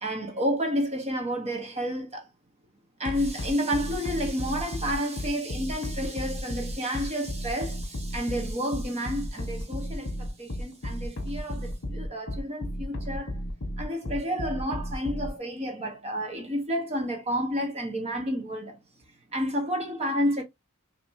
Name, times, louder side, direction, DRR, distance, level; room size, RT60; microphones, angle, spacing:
voice 1, 0.0-2.2 3.0-13.3 13.8-18.8 19.3-20.4, equal, 30° right, 1.1 m, -30 dB
sound 1, 3.0-15.3, equal, 55° left, 1.1 m, -33 dB
6.0 x 3.0 x 2.7 m
head